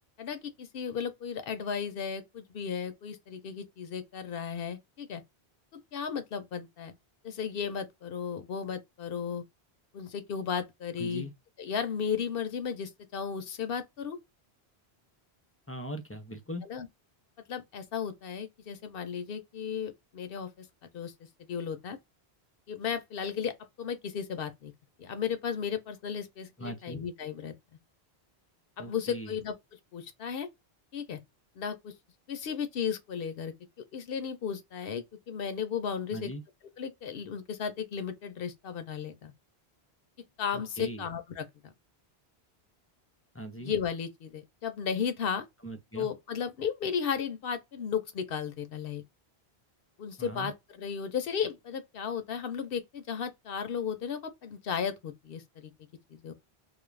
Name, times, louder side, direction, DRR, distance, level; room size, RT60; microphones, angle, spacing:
voice 1, 0.2-5.2 5.7-6.9 7.2-9.4 9.9-11.3 11.6-14.2 16.6-16.9 17.5-21.1 21.5-22.0 22.7-24.7 25.0-27.5 28.8-29.5 29.9-30.5 30.9-31.2 31.6-31.9 32.3-36.3 36.8-39.3 40.4-41.7 43.6-45.4 45.9-49.0 50.0-55.7 56.1-56.3, left 7 dB, 70° left, 0.7 m, -35 dB
voice 2, 11.0-11.3 15.7-16.6 26.6-27.0 28.8-29.3 36.1-36.4 40.5-41.0 43.3-43.7 45.6-46.1 50.2-50.5, equal, 25° left, 0.3 m, -40 dB
2.4 x 2.0 x 3.1 m
omnidirectional pair, 1.1 m